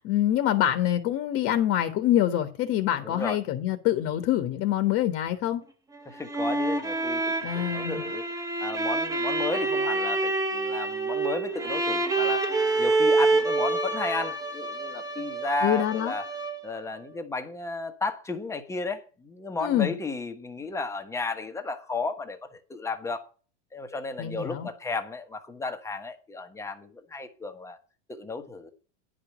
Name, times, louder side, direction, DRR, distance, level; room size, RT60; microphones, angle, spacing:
voice 1, 0.0-5.6 7.4-8.1 15.6-16.1 19.6-19.9 24.2-24.7, left 12 dB, 40° left, 1.3 m, -25 dB
voice 2, 3.0-3.4 6.1-8.2 8.6-12.5 12.8-16.2 16.6-23.2 23.7-27.8 28.1-28.7, left 3 dB, 10° left, 1.2 m, -33 dB
sound 1, 6.0-16.8, right 3 dB, 10° right, 1.3 m, -27 dB
10.5 x 5.1 x 7.4 m
supercardioid pair, 145°, 34 cm